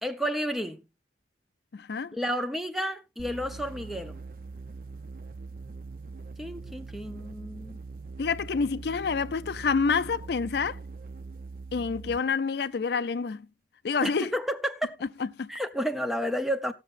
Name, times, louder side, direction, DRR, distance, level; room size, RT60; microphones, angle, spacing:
voice 1, 0.0-0.8 2.1-4.2 6.4-7.8 14.0-15.0 15.5-16.7, equal, ahead, 0.6 m, -31 dB
voice 2, 1.7-2.1 8.2-10.8 11.7-13.5 13.8-14.3 15.2-15.5, left 5 dB, 60° left, 0.4 m, -28 dB
sound 1, 3.2-12.3, right 4 dB, 50° right, 0.6 m, -42 dB
19.0 x 6.7 x 2.5 m
head